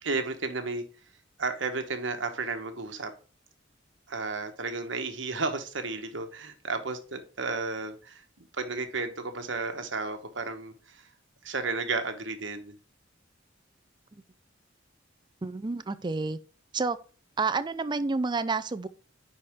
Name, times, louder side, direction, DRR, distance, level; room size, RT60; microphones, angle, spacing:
voice 1, 0.0-0.8 1.4-3.1 4.1-11.1 11.4-12.7, right 3 dB, 75° right, 1.2 m, -33 dB
voice 2, 15.4-16.4 16.7-17.0 17.4-18.9, right 4 dB, 25° right, 0.4 m, -29 dB
9.8 x 4.3 x 3.6 m
head